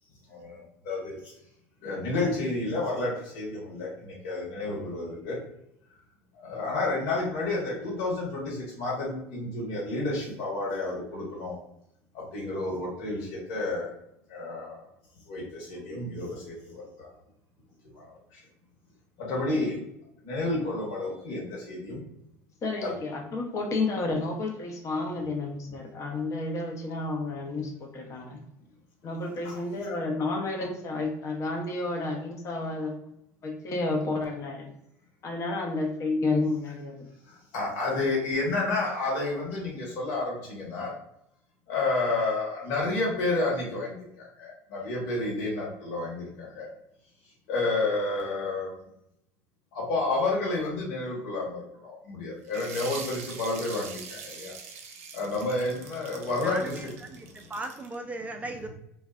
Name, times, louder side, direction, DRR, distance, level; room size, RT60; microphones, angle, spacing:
voice 1, 0.3-1.3 1.8-5.4 6.3-11.5 12.1-13.9 14.3-14.9 15.3-17.1 17.9-18.4 19.2-19.8 20.2-22.0 22.8-22.9 29.4-29.6 37.3-40.9 41.7-46.7 47.5-48.8 49.7-54.5 55.1-56.9 57.4-57.5, left 2 dB, 70° left, -3 dB, 1.2 m, -30 dB
voice 2, 22.6-28.4 29.0-33.0 33.4-34.7 35.2-37.0, left 2 dB, 45° left, 1 dB, 0.7 m, -31 dB
sound 1, 52.5-58.0, right 5 dB, 85° right, 0.4 m, -43 dB
voice 3, 56.4-58.7, right 2 dB, 20° right, 5 dB, 0.3 m, -37 dB
2.5 x 2.1 x 2.3 m, 0.77 s
supercardioid pair, 90°, 7 cm